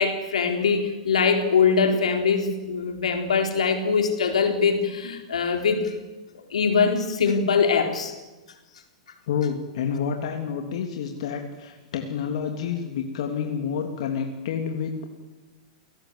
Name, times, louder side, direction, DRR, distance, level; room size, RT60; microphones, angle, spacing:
voice 1, 0.0-6.0 6.5-8.1, left 5 dB, 85° left, 5 dB, 4.1 m, -22 dB
voice 2, 9.3-15.1, left 7 dB, 65° left, 4 dB, 3.1 m, -29 dB
29.0 x 18.5 x 8.3 m, 1.1 s
hypercardioid pair, 120°, 3 cm